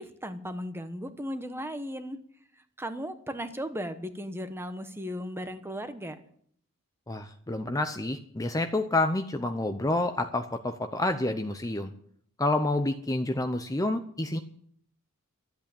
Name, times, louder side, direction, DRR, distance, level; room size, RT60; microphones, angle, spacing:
voice 1, 0.0-2.2 2.8-6.2, equal, 10° right, 9 dB, 1.1 m, -36 dB
voice 2, 7.1-11.9 12.4-14.4, left 2 dB, 15° left, 7 dB, 0.7 m, -28 dB
13.0 x 8.5 x 8.6 m, 0.63 s
head